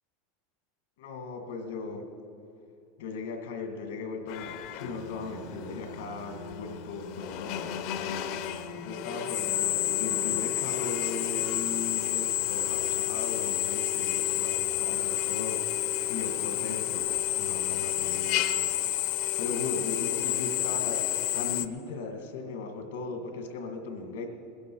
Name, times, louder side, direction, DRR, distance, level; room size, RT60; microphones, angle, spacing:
voice 1, 1.0-2.1 3.0-18.8 19.4-24.2, left 4 dB, 90° left, 4 dB, 1.9 m, -38 dB
Drill, 4.3-21.7, left 12 dB, 60° left, 0.7 m, -30 dB
21.0 x 11.0 x 4.7 m, 2.8 s
supercardioid pair, 125°, 0 cm